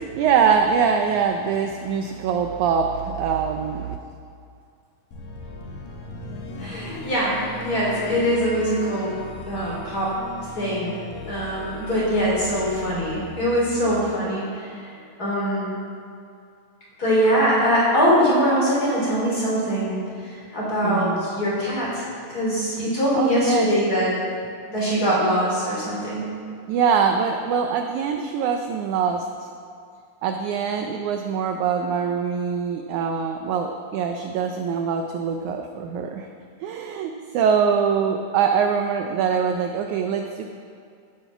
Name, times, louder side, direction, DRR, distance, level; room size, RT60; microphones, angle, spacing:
voice 1, 0.0-4.0 20.8-21.3 23.1-23.7 26.7-29.5 30.2-36.3 36.6-40.4, right 6 dB, 80° right, 4 dB, 1.8 m, -23 dB
sound 1, 5.1-15.3, left 1 dB, 80° left, 3.3 m, -38 dB
voice 2, 6.6-9.1 9.5-10.1 10.5-10.9 11.3-14.8 15.2-15.7 17.0-24.2 24.7-26.3, equal, 25° left, -6 dB, 3.9 m, -22 dB
14.0 x 8.0 x 5.8 m, 2.4 s
omnidirectional pair, 4.1 m